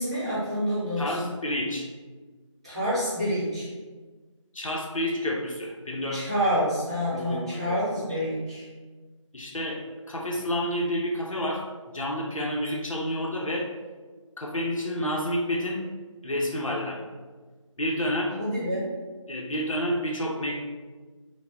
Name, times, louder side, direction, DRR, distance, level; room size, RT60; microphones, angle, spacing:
voice 1, 0.0-1.3 2.6-3.7 6.1-8.7 18.4-18.9, equal, 10° right, -10 dB, 0.9 m, -28 dB
voice 2, 1.0-1.9 4.5-6.2 7.1-8.2 9.3-13.7 14.4-15.8 16.2-17.0 17.8-18.4 19.3-20.6, equal, 85° left, -1 dB, 0.9 m, -29 dB
5.3 x 2.3 x 3.8 m, 1.4 s
figure-of-eight pair, 175°, 17 cm